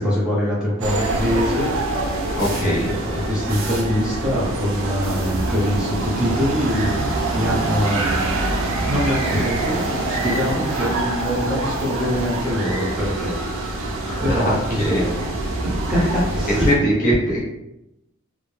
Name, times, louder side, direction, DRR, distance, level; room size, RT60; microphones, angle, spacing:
voice 1, 0.0-1.7 2.5-8.0 8.9-13.3 14.2-15.2 15.6-16.7, equal, 5° right, -8 dB, 0.8 m, -23 dB
sound 1, 0.8-16.8, right 2 dB, 70° right, 0.5 m, -25 dB
voice 2, 2.4-2.9 14.0-15.0 15.5-15.6 16.5-17.4, equal, 45° left, -6 dB, 0.7 m, -21 dB
2.1 x 2.1 x 3.1 m, 0.87 s
head